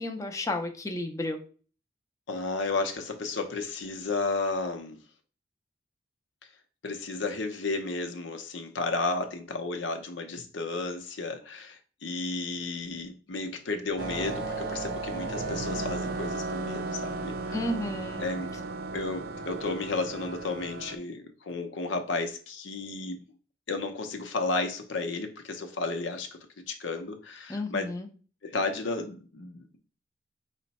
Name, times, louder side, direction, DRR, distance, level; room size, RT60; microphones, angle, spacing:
voice 1, 0.0-1.4 17.5-18.3 27.5-28.1, left 1 dB, 15° left, 0.5 m, -32 dB
voice 2, 2.3-5.0 6.8-17.7 18.2-18.5 18.9-23.2 23.7-26.4 26.7-27.8 28.4-29.8, left 3 dB, 85° left, 0.7 m, -33 dB
sound 1, 14.0-21.0, right 3 dB, 55° right, 0.4 m, -35 dB
4.9 x 2.2 x 4.0 m
head